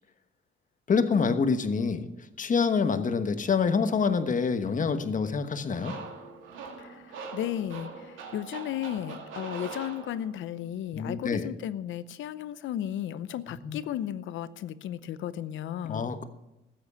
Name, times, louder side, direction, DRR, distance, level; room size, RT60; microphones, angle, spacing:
voice 1, 0.9-2.0 2.4-5.9 10.9-11.5 13.6-13.8 15.8-16.2, left 5 dB, 40° left, 9 dB, 1.2 m, -26 dB
sound 1, 5.7-10.5, right 4 dB, 85° right, 2.2 m, -42 dB
voice 2, 7.3-16.1, left 11 dB, 75° left, 15 dB, 0.7 m, -34 dB
14.0 x 8.0 x 6.9 m, 0.94 s
cardioid pair, 90°, 20 cm